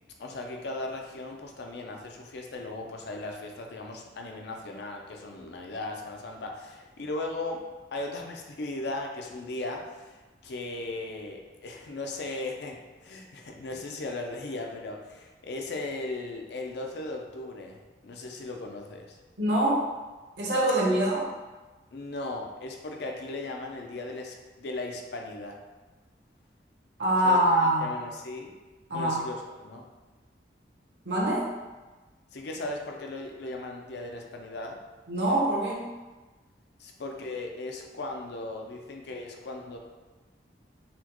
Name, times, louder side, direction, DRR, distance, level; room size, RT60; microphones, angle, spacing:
voice 1, 0.2-7.6 7.9-19.2 21.9-25.6 27.2-28.6 28.9-29.8 32.3-34.8 36.8-39.8, left 2 dB, 65° left, 2 dB, 0.4 m, -37 dB
voice 2, 19.4-19.8 20.4-21.3 27.0-27.9 28.9-29.2 31.0-31.5 35.1-35.9, right 1 dB, 70° right, -4 dB, 0.8 m, -24 dB
4.2 x 2.2 x 2.9 m, 1.2 s
head